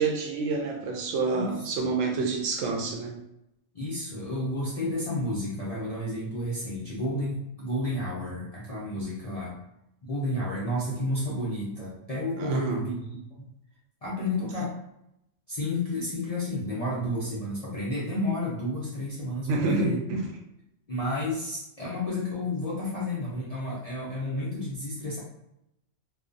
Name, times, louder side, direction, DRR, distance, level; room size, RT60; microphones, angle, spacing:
voice 1, 0.0-3.2 12.4-12.9 19.5-20.2, right 4 dB, 75° right, 1 dB, 0.9 m, -28 dB
voice 2, 1.3-1.9 3.7-9.6 10.0-13.5 14.0-14.7 15.5-20.0 20.9-25.2, left 1 dB, 60° left, -7 dB, 0.4 m, -31 dB
2.4 x 2.2 x 2.5 m, 0.83 s
omnidirectional pair, 1.3 m